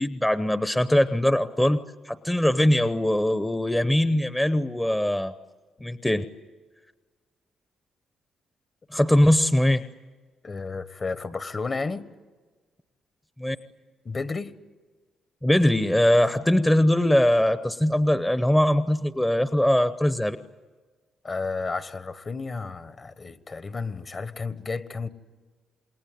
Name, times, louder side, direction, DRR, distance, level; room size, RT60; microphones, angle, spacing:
voice 1, 0.0-1.8 2.1-5.3 5.8-6.2 8.9-9.8 13.4-13.6 15.4-20.4, left 1 dB, 10° left, 12 dB, 0.8 m, -21 dB
voice 2, 10.4-12.1 14.0-14.5 21.2-25.1, left 4 dB, 35° left, 13 dB, 1.3 m, -32 dB
27.5 x 21.0 x 9.4 m, 1.4 s
cardioid pair, 90°, 0 cm